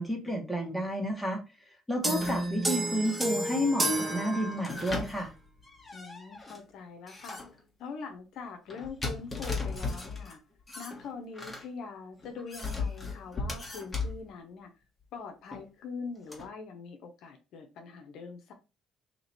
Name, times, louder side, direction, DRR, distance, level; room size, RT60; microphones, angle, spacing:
voice 1, 0.0-1.4 1.9-5.3, equal, 5° left, 1.5 m, -31 dB
sound 1, 2.0-5.0, right 1 dB, 25° right, 1.3 m, -31 dB
sound 2, 2.1-2.5 3.0-3.6 4.5-6.6 7.1-7.6 8.7-10.4 10.7-11.6 12.2-14.2 15.5-15.6 16.3-16.5, left 3 dB, 20° left, 1.3 m, -37 dB
voice 2, 5.9-7.4 7.8-10.4 10.8-14.7 15.1-18.5, left 5 dB, 75° left, 0.7 m, -43 dB
2.9 x 2.9 x 4.2 m
supercardioid pair, 70°, 0 cm